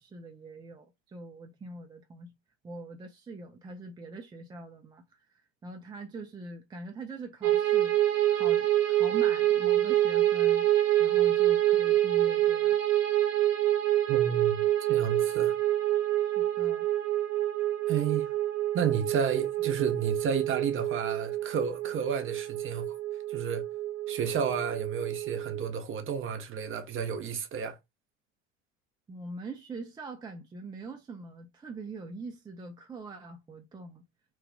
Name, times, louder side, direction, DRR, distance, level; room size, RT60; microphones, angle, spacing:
voice 1, 0.0-2.3 2.6-5.0 5.6-8.0 8.3-10.7 11.0-12.8 16.2-16.9 29.1-34.0, right 2 dB, 10° right, 0.4 m, -43 dB
sound 1, 7.4-25.7, right 13 dB, 85° right, 0.7 m, -27 dB
voice 2, 14.1-15.6 17.9-18.3 18.7-22.9 23.3-23.6 24.1-27.8, right 7 dB, 35° right, 0.8 m, -32 dB
3.0 x 2.3 x 3.4 m
hypercardioid pair, 80°, 38 cm